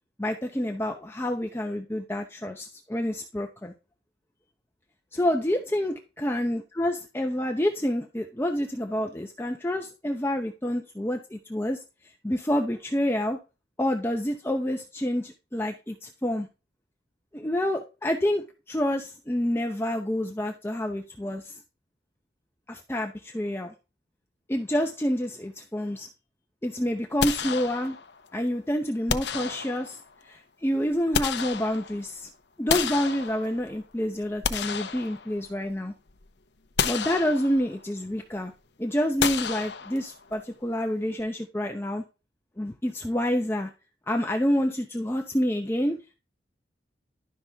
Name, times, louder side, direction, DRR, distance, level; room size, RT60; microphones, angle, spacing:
voice 1, 0.2-3.7 5.1-11.8 12.2-13.4 13.8-16.5 17.3-21.5 22.7-23.7 24.5-26.1 26.6-28.0 28.3-30.0 30.2-32.3 32.6-35.9 36.8-38.5 38.8-42.0 42.6-43.7 44.1-46.2, left 1 dB, 15° left, 3 dB, 0.7 m, -28 dB
sound 1, 27.2-28.2 29.1-30.1 30.8-32.1 32.7-33.8 34.2-35.7 36.1-36.2 36.8-37.8 39.2-40.3, left 6 dB, 70° left, 0.7 m, -31 dB
11.5 x 6.0 x 3.5 m, 0.30 s
head